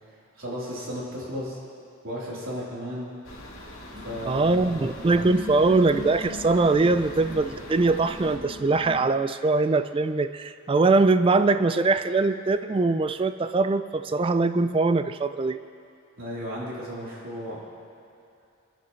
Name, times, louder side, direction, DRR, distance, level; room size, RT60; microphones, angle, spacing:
voice 1, 0.4-1.6 2.0-3.1 4.0-4.7 16.2-17.6, equal, 80° right, -7 dB, 3.9 m, -34 dB
sound 1, 3.2-8.4, left 1 dB, 85° left, 1.9 m, -42 dB
sound 2, 3.9-9.0, left 2 dB, 50° right, 2.4 m, -41 dB
voice 2, 4.3-15.6, right 3 dB, 25° right, 11 dB, 0.3 m, -22 dB
25.0 x 10.0 x 3.2 m, 2.5 s
head